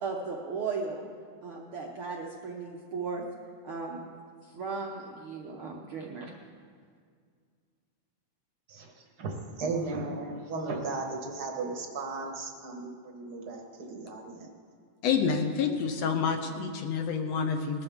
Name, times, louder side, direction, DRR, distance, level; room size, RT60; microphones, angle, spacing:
voice 1, 0.0-1.1 1.4-3.2 3.6-4.0 4.4-6.3, right 4 dB, 75° right, -1 dB, 1.2 m, -36 dB
voice 2, 8.7-14.5, right 3 dB, 55° right, 1 dB, 1.1 m, -36 dB
voice 3, 15.0-17.8, left 6 dB, 70° left, 5 dB, 1.7 m, -28 dB
20.0 x 12.5 x 3.6 m, 2.1 s
omnidirectional pair, 3.7 m